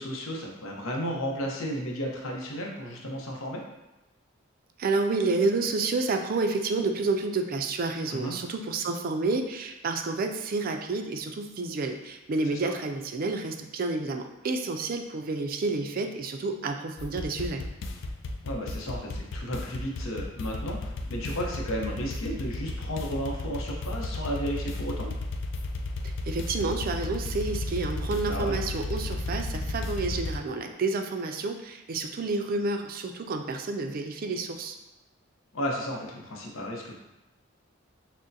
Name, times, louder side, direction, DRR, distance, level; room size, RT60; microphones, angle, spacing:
voice 1, 0.0-3.6 8.1-8.4 12.4-12.7 18.4-25.1 28.2-28.6 35.5-37.0, equal, 90° left, -1 dB, 0.8 m, -33 dB
voice 2, 4.8-17.6 26.3-34.7, right 3 dB, 45° right, 5 dB, 0.4 m, -29 dB
sound 1, 17.0-30.4, left 2 dB, 65° left, 0.4 m, -33 dB
6.2 x 2.1 x 2.6 m, 1.0 s
head